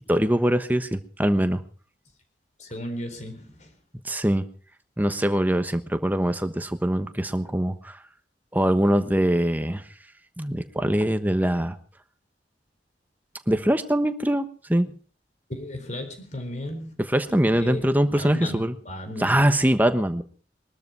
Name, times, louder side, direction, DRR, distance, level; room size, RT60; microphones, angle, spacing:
voice 1, 0.1-1.6 4.0-4.4 5.0-8.0 8.5-9.8 10.4-11.8 13.5-14.9 17.1-18.7 19.2-20.2, right 1 dB, 10° right, 1.2 m, -23 dB
voice 2, 2.6-3.7 15.5-16.9 17.5-19.6, left 1 dB, 45° left, 4.1 m, -35 dB
22.0 x 13.0 x 4.7 m
head